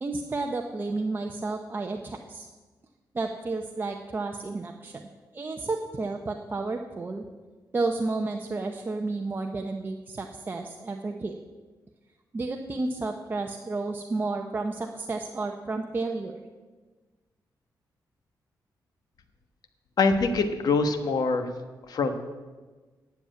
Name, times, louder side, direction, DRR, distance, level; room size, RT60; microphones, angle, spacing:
voice 1, 0.0-2.5 3.1-5.1 5.3-7.3 7.7-11.3 12.3-16.4, right 3 dB, 25° right, 2 dB, 0.7 m, -31 dB
voice 2, 20.0-21.5 21.9-22.2, left 4 dB, 65° left, 7 dB, 1.2 m, -24 dB
10.0 x 7.2 x 9.1 m, 1.3 s
wide cardioid pair, 135°, 7 cm